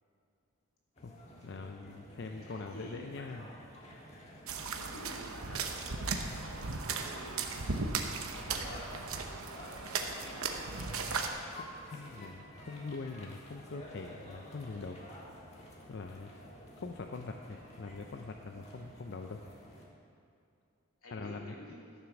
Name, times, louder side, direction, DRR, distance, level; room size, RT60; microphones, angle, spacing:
sound 1, 1.0-19.9, equal, 30° left, 1.5 m, -51 dB
voice 1, 1.4-3.5 11.9-15.0 15.9-16.3 16.8-19.4 21.1-21.6, left 3 dB, 50° left, 4 dB, 0.5 m, -43 dB
voice 2, 2.5-3.5 4.7-6.2 6.8-7.4 8.3-9.1 10.0-10.7 16.4-16.8 21.0-21.8, left 1 dB, 85° left, -4 dB, 2.8 m, -50 dB
sound 2, 4.5-11.3, right 4 dB, 80° right, 0.9 m, -37 dB
13.0 x 7.4 x 6.0 m, 2.5 s
head